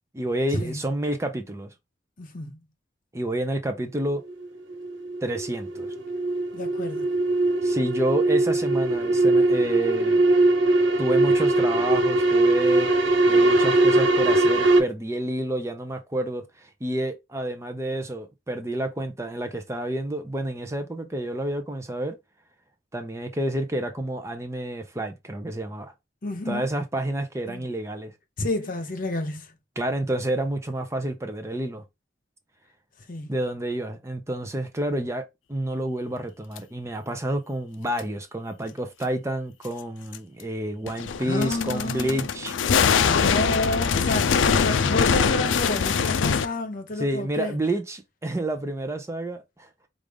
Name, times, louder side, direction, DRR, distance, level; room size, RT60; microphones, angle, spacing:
voice 1, 0.1-1.7 3.1-4.2 5.2-5.9 7.6-10.2 11.0-12.9 13.3-22.2 22.9-25.9 26.5-28.1 29.8-31.8 33.3-42.5 47.0-49.7, right 1 dB, 15° right, 0.6 m, -29 dB
voice 2, 2.2-2.6 6.5-7.1 26.2-26.7 27.5-27.7 28.4-29.5 33.1-33.3 41.2-42.3 43.0-47.6, left 2 dB, 45° left, 0.9 m, -30 dB
sound 1, 4.3-14.8, right 2 dB, 90° right, 1.2 m, -21 dB
sound 2, 36.6-36.7 38.0-38.1 40.1-40.2 40.9-46.5, left 6 dB, 85° left, 0.4 m, -23 dB
4.8 x 2.5 x 3.4 m
head